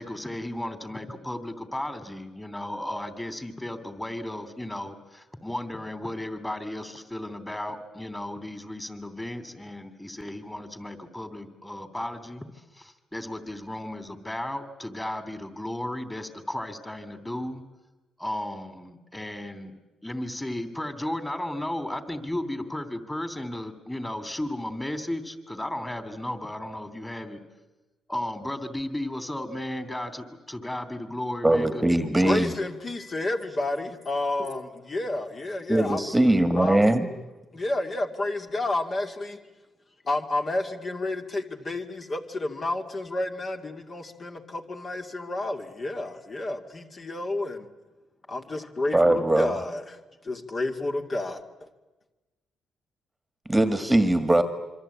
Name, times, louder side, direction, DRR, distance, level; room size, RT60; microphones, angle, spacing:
voice 1, 0.0-12.5 12.8-17.6 18.2-19.7 20.0-27.4 28.1-31.8 32.1-32.4, left 1 dB, 10° left, 11 dB, 3.0 m, -34 dB
voice 2, 31.4-32.5 35.7-37.1 48.9-49.5 53.5-54.4, right 1 dB, 10° right, 9 dB, 1.8 m, -21 dB
voice 3, 32.2-36.0 36.5-36.8 37.5-39.4 40.0-47.7 48.3-50.0 50.2-51.7, left 2 dB, 35° left, 4 dB, 2.3 m, -30 dB
26.5 x 24.5 x 8.6 m, 1.1 s
cardioid pair, 90°, 0 cm